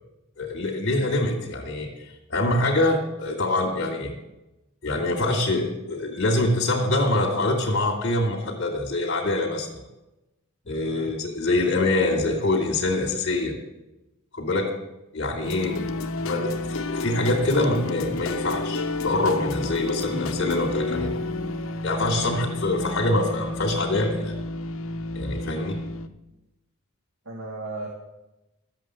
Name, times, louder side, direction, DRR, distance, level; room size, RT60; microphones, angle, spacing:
voice 1, 0.4-4.1 4.8-9.8 10.7-13.5 14.3-14.7 15.1-15.8 16.2-21.1 21.8-24.3 25.1-25.8, left 2 dB, 50° left, -3 dB, 2.4 m, -25 dB
sound 1, 15.4-26.1, left 2 dB, 70° left, 0.8 m, -30 dB
voice 2, 27.3-27.9, right 2 dB, 65° right, 1 dB, 1.9 m, -35 dB
13.0 x 8.2 x 7.8 m, 0.97 s
head